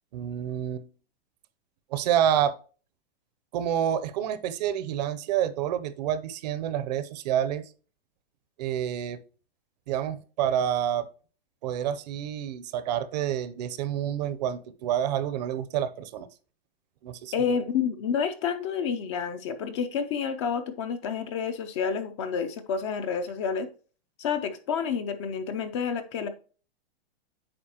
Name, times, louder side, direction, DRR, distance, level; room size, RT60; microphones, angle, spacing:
voice 1, 0.1-0.9 1.9-2.5 3.5-7.6 8.6-9.2 9.9-11.1 11.6-16.3 17.0-17.6, right 10 dB, 40° right, 0.6 m, -28 dB
voice 2, 17.3-23.7 24.2-26.3, left 6 dB, 30° left, 0.4 m, -29 dB
8.7 x 5.1 x 2.8 m
supercardioid pair, 160°, 31 cm